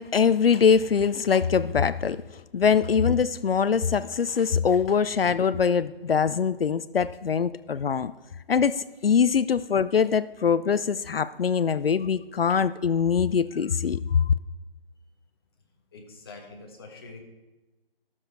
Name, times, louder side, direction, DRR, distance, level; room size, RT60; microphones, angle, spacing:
voice 1, 0.0-2.2 2.5-8.1 8.5-14.3, left 6 dB, 70° left, 15 dB, 0.5 m, -23 dB
voice 2, 15.9-17.2, left 3 dB, 25° left, 1 dB, 1.3 m, -45 dB
12.5 x 7.2 x 4.6 m, 1.1 s
figure-of-eight pair, 160°, 31 cm